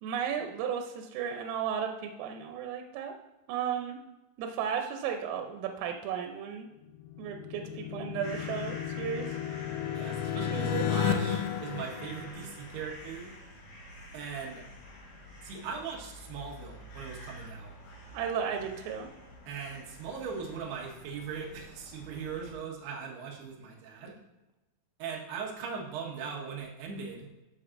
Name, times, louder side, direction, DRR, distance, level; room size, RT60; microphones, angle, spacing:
voice 1, 0.0-3.1 3.5-4.0 4.4-6.7 7.2-9.3 10.5-10.9 18.1-19.1, right 8 dB, 90° right, 4 dB, 3.4 m, -34 dB
sound 1, 7.0-12.8, left 8 dB, 85° left, 2.7 m, -33 dB
sound 2, 8.2-22.5, left 1 dB, 60° left, 2.1 m, -49 dB
voice 2, 9.9-13.3 14.1-14.6 15.4-17.7 19.5-24.1 25.0-27.3, right 6 dB, 65° right, -2 dB, 3.0 m, -39 dB
14.5 x 5.9 x 2.6 m, 1.0 s
omnidirectional pair, 5.8 m